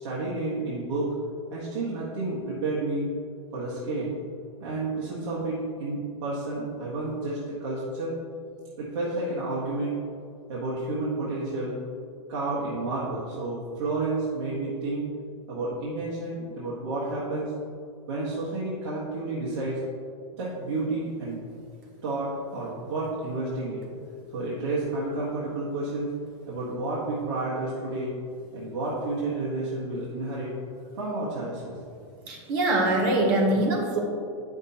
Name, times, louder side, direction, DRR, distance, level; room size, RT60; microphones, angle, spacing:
voice 1, 0.0-1.1 1.5-3.1 3.5-4.1 4.6-8.1 8.8-9.9 10.5-11.7 12.3-15.0 15.5-17.5 18.1-19.8 20.3-21.4 22.0-23.9 24.3-26.1 26.5-28.1 28.5-30.5 30.9-31.7, right 2 dB, 65° right, -7 dB, 1.6 m, -30 dB
voice 2, 32.3-34.0, right 1 dB, 40° right, 0 dB, 1.0 m, -23 dB
8.9 x 6.1 x 2.9 m, 2.3 s
supercardioid pair, 170°, 16 cm